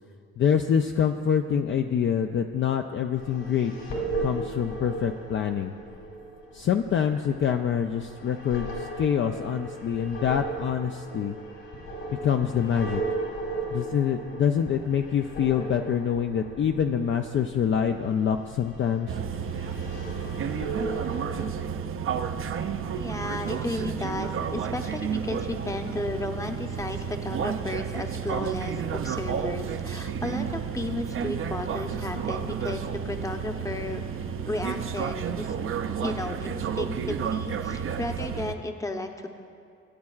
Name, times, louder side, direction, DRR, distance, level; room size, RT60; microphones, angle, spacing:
voice 1, 0.4-3.7 4.2-5.7 6.5-11.4 12.2-13.0 13.7-19.2, left 8 dB, 40° left, 5 dB, 0.4 m, -25 dB
sound 1, 3.2-21.5, right 2 dB, 80° left, 2.8 m, -37 dB
sound 2, 19.1-38.5, right 7 dB, 45° right, 0.5 m, -31 dB
voice 2, 22.9-34.0 34.5-35.6 36.0-39.3, left 2 dB, 10° left, 5 dB, 0.7 m, -33 dB
18.0 x 8.5 x 2.4 m, 2.3 s
cardioid pair, 90°, 30 cm